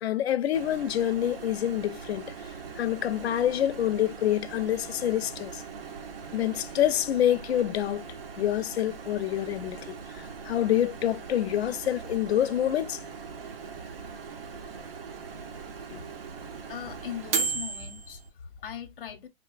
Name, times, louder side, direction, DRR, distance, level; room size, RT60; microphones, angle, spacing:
voice 1, 0.0-2.3 2.8-5.6 6.3-8.0 8.4-13.0 15.9-16.0, left 11 dB, 85° left, 0.5 m, -27 dB
Microwave oven, 0.5-18.3, right 5 dB, 65° right, 0.8 m, -39 dB
voice 2, 16.7-19.3, left 9 dB, 60° left, 0.8 m, -40 dB
3.6 x 2.2 x 2.3 m
hypercardioid pair, 175°, 31 cm